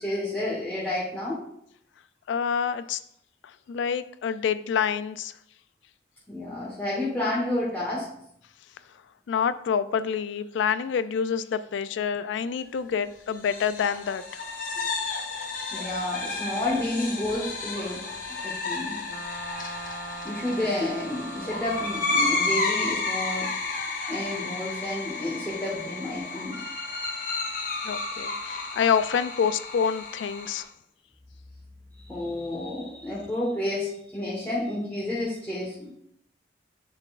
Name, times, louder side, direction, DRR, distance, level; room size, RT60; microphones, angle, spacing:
voice 1, 0.0-1.4 6.3-8.1 14.8-14.9 15.7-18.0 18.4-19.0 20.2-23.5 24.1-26.6 32.0-35.9, left 1 dB, 10° left, -8 dB, 1.2 m, -30 dB
voice 2, 2.3-3.0 3.7-5.3 9.3-14.4 20.3-20.5 27.8-30.7, left 7 dB, 90° left, 14 dB, 0.3 m, -27 dB
sound 1, 13.3-30.6, left 3 dB, 45° left, 0.9 m, -32 dB
sound 2, 19.1-23.0, right 3 dB, 55° right, 0.5 m, -41 dB
9.7 x 3.9 x 2.4 m, 0.72 s
head